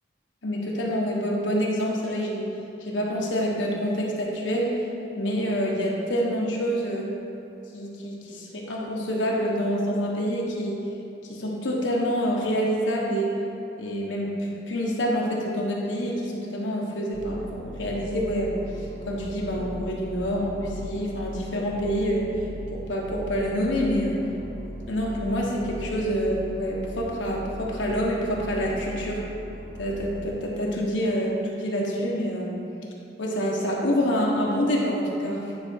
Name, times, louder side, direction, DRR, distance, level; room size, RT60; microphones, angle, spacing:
voice 1, 0.4-2.5 2.8-4.7 5.2-7.1 7.7-10.9 11.3-13.3 13.8-22.3 22.7-24.2 24.9-29.2 29.7-32.6 33.2-35.5, equal, 90° left, -3 dB, 1.2 m, -27 dB
sound 1, 17.1-30.3, equal, 60° right, 1.0 m, -38 dB
9.3 x 3.9 x 4.7 m, 2.9 s
head